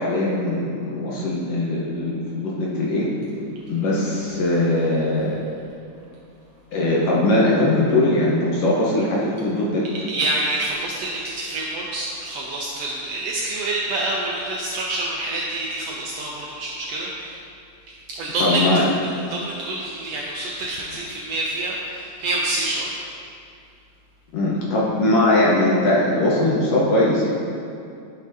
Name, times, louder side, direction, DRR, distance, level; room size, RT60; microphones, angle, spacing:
voice 1, 0.0-3.1 3.7-5.4 6.7-9.8 18.4-18.8 24.3-27.3, left 1 dB, 65° left, -5 dB, 1.8 m, -20 dB
voice 2, 10.1-17.4 18.1-18.6 19.0-22.9, right 2 dB, 75° right, -3 dB, 1.5 m, -27 dB
10.5 x 6.1 x 2.7 m, 2.4 s
omnidirectional pair, 3.5 m